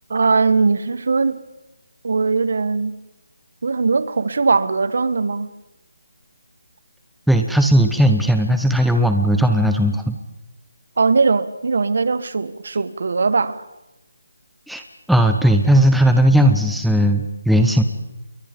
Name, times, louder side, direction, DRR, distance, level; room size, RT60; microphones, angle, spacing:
voice 1, 0.1-1.4 2.0-3.0 3.6-5.5 11.0-13.6, right 4 dB, 55° right, 16 dB, 1.3 m, -19 dB
voice 2, 7.3-10.2 14.7-14.8 15.1-17.8, equal, ahead, 5 dB, 0.8 m, -16 dB
28.5 x 22.5 x 5.2 m, 0.93 s
hypercardioid pair, 170°, 0 cm